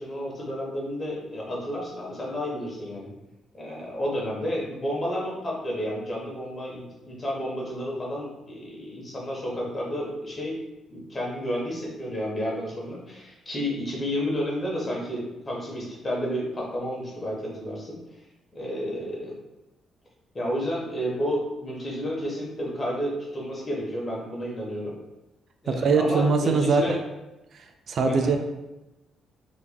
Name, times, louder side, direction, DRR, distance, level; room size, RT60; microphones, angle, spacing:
voice 1, 0.0-3.1 3.5-10.6 10.9-18.0 18.5-19.3 20.3-24.9 25.6-27.0 28.0-28.3, equal, 30° left, -3 dB, 1.2 m, -31 dB
voice 2, 25.7-26.8 27.5-28.4, right 4 dB, 60° right, 5 dB, 0.3 m, -22 dB
3.3 x 3.1 x 2.3 m, 0.98 s
cardioid pair, 90°, 0 cm